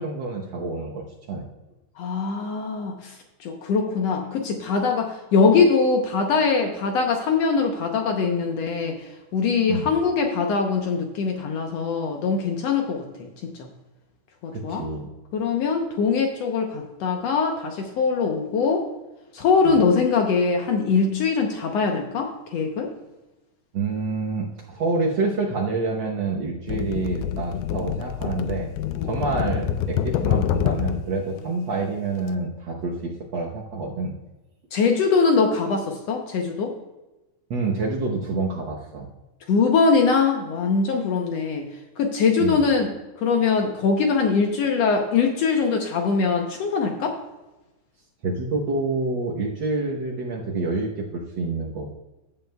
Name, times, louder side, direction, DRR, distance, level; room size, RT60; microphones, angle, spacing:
voice 1, 0.0-1.5 9.7-9.9 14.5-15.1 19.6-19.8 23.7-28.7 29.1-34.1 37.5-39.1 42.4-42.6 48.2-51.9, right 3 dB, 75° right, -2 dB, 1.0 m, -27 dB
voice 2, 2.0-3.1 3.4-8.9 9.3-13.3 13.6-13.7 14.4-14.8 15.3-18.8 19.3-22.9 28.9-29.1 34.7-36.7 39.5-41.6 42.0-42.9 43.2-47.2, left 5 dB, 70° left, 3 dB, 1.7 m, -22 dB
sound 1, 26.7-31.1 32.2-32.3, left 9 dB, 90° left, 2.1 m, -26 dB
15.5 x 7.5 x 2.3 m, 1.0 s
omnidirectional pair, 3.6 m